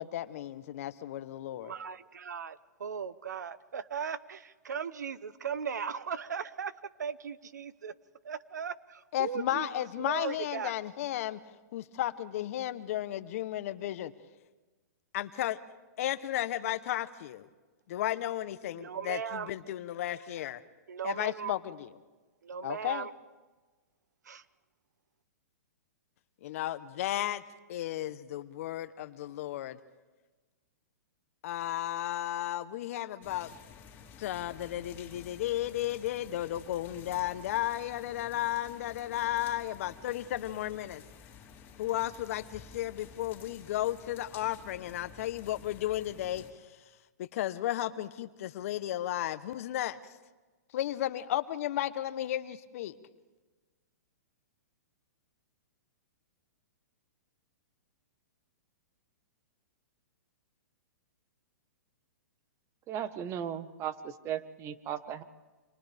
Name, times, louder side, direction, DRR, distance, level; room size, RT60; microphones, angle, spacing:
voice 1, 0.0-1.7 9.1-11.4 11.7-14.1 15.1-15.6 16.0-17.5 17.9-20.6 21.0-21.9 22.6-23.1 26.4-27.4 27.7-29.8 31.4-33.6 34.2-41.0 41.8-46.4 47.2-50.0 50.7-52.9, left 13 dB, 55° left, 13 dB, 0.9 m, -34 dB
voice 2, 1.5-6.7 7.0-7.9 8.2-10.8 18.7-19.5 20.9-21.6 22.4-23.1 24.2-24.4, right 7 dB, 85° right, 16 dB, 0.9 m, -38 dB
sound 1, 33.2-46.5, left 7 dB, 25° left, 3.5 m, -52 dB
voice 3, 62.9-65.2, right 9 dB, 30° right, 13 dB, 1.2 m, -36 dB
29.5 x 26.5 x 3.5 m, 1.3 s
hypercardioid pair, 135°, 9 cm